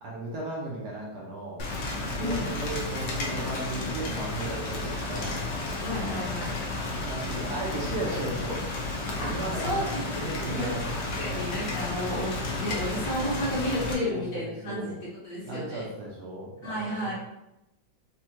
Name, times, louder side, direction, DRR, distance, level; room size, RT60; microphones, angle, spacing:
voice 1, 0.0-1.6 1.9-5.4 5.9-6.2 7.0-8.6 9.2-11.4 11.9-12.2 14.0-15.0 15.4-17.1, right 2 dB, 65° right, -4 dB, 1.2 m, -36 dB
Rain, 1.6-13.9, left 2 dB, 70° left, 1.2 m, -32 dB
voice 2, 2.2-2.5 5.8-6.5 9.2-15.9 16.6-17.1, left 1 dB, 50° left, -8 dB, 1.4 m, -32 dB
4.3 x 2.3 x 2.8 m, 0.89 s
omnidirectional pair, 2.1 m